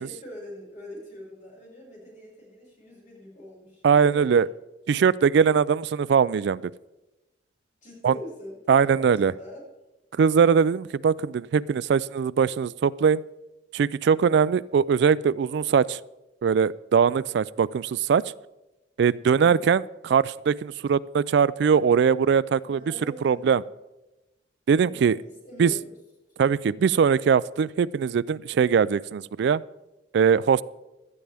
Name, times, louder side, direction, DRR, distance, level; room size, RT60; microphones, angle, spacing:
voice 1, 0.0-4.4 7.8-9.6 14.4-14.5 19.4-19.7 22.6-23.7 24.7-25.9 26.3-26.5, left 1 dB, 40° left, -4 dB, 5.7 m, -44 dB
voice 2, 3.8-4.5 4.9-6.6 8.0-8.1 8.7-9.3 10.2-13.2 13.7-16.0 16.4-18.2 19.0-22.8 23.2-23.6 24.7-25.2 25.6-25.7 26.4-29.6 30.1-30.6, right 6 dB, 60° right, 20 dB, 0.3 m, -21 dB
16.5 x 12.0 x 3.4 m, 1.0 s
head